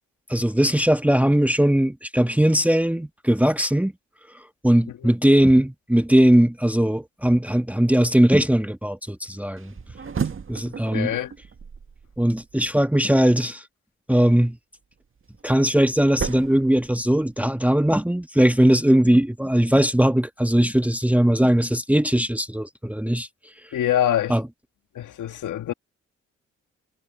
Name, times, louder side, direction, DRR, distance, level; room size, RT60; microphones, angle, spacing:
voice 1, 0.3-3.9 4.6-9.7 10.5-11.1 12.2-13.6 14.1-14.6 15.4-23.3 24.3-24.4, right 1 dB, 5° right, 1.5 m, -19 dB
sound 1, 9.6-12.7 14.9-17.5, right 6 dB, 40° right, 1.9 m, -34 dB
voice 2, 10.9-11.3 23.7-24.4 24.9-25.7, left 11 dB, 70° left, 1.9 m, -25 dB
supercardioid pair, 50°, 31 cm